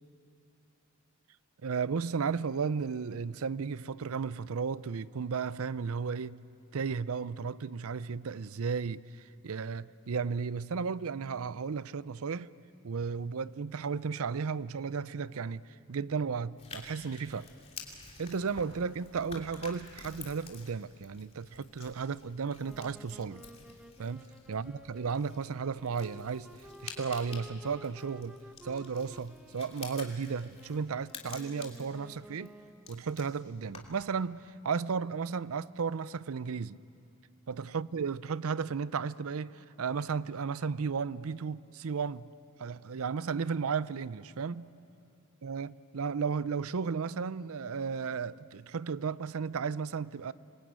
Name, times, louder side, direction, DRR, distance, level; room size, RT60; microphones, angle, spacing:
voice 1, 1.6-6.4 6.7-9.0 9.4-12.5 12.8-15.6 15.9-17.5 18.2-23.4 24.0-24.2 24.5-26.5 26.8-28.4 28.6-32.5 32.9-36.8 37.5-42.3 42.6-44.7 45.4-50.3, right 5 dB, 70° right, 0.5 m, -34 dB
sound 1, 16.6-34.1, left 5 dB, 30° left, 2.8 m, -50 dB
sound 2, 22.6-33.0, right 1 dB, 5° right, 1.0 m, -53 dB
27.0 x 22.0 x 9.4 m
head